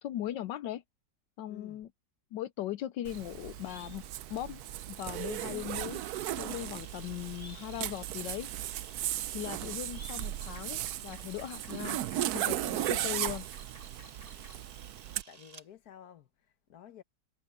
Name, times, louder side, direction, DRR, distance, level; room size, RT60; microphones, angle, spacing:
voice 1, 0.0-0.8 1.4-1.9 2.3-4.0 4.3-4.6 4.9-8.5 9.3-12.0 12.3-13.4, left 13 dB, 80° left, 1.3 m, -39 dB
voice 2, 1.5-1.8 12.8-13.2 15.3-17.0, left 10 dB, 60° left, 1.6 m, -53 dB
Zipper (clothing), 3.0-15.2, right 13 dB, 70° right, 1.0 m, -36 dB
sound 1, 3.1-14.7, equal, 30° left, 5.4 m, -56 dB
Camera, 5.8-15.7, right 5 dB, 40° right, 0.5 m, -56 dB
omnidirectional pair, 1.9 m